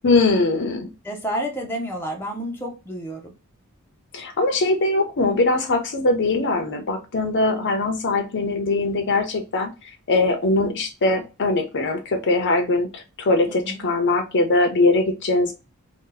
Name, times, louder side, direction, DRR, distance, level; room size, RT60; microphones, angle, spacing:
voice 1, 0.0-0.9 4.1-9.7 10.1-15.5, left 2 dB, 55° left, 0.6 m, -21 dB
voice 2, 1.0-3.3 13.5-13.8, equal, 10° left, 0.6 m, -30 dB
2.7 x 2.2 x 3.8 m
head